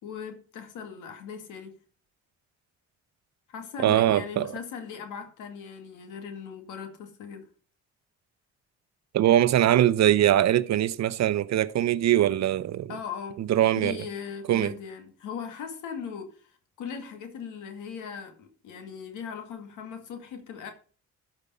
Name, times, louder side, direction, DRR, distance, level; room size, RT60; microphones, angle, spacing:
voice 1, 0.0-1.7 3.5-7.5 12.9-13.4 13.8-20.7, left 7 dB, 85° left, 2.1 m, -39 dB
voice 2, 3.8-4.5 9.1-12.9 13.4-14.0 14.5-14.7, right 12 dB, 60° right, 0.7 m, -22 dB
12.5 x 5.2 x 5.6 m
cardioid pair, 90°, 30 cm